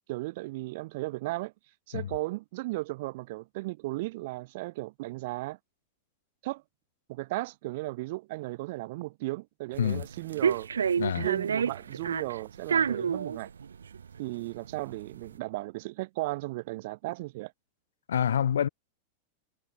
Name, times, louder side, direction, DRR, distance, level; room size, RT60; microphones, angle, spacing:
voice 1, 0.1-1.5 1.9-5.6 6.4-6.6 7.1-10.7 11.2-13.5 14.2-17.5, right 21 dB, 50° right, 2.5 m, -35 dB
sound 1, 9.7-15.3, right 7 dB, 70° right, 2.3 m, -29 dB
voice 2, 18.1-18.7, left 9 dB, 65° left, 3.9 m, -27 dB
figure-of-eight pair, 90°, 0 cm